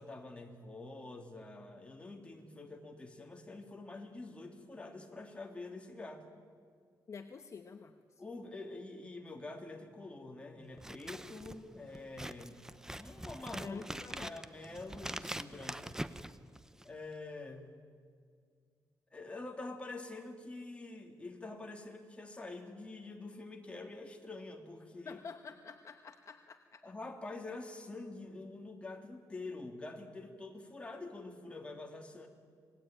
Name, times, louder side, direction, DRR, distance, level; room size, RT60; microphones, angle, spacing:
voice 1, 0.0-6.2 8.2-13.8 14.2-16.0 16.8-17.7 19.1-25.2 26.8-32.3, left 2 dB, 15° left, 2 dB, 3.1 m, -46 dB
voice 2, 7.1-7.9 13.6-14.4 25.0-26.8, left 5 dB, 45° left, 7 dB, 1.0 m, -48 dB
Scissors, 10.7-17.0, right 1 dB, 5° right, 0.8 m, -44 dB
27.0 x 20.0 x 9.0 m, 2.1 s
wide cardioid pair, 130°, 7 cm